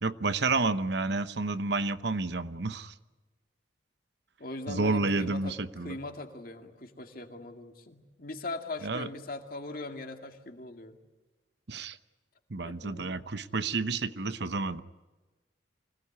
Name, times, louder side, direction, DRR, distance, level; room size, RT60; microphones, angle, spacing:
voice 1, 0.0-2.9 4.7-6.0 8.8-9.1 11.7-12.0 12.5-14.8, right 3 dB, 60° right, 12 dB, 0.9 m, -30 dB
voice 2, 4.4-11.0 12.6-13.1, left 2 dB, 45° left, 4 dB, 2.3 m, -40 dB
25.0 x 18.0 x 9.7 m, 1.2 s
head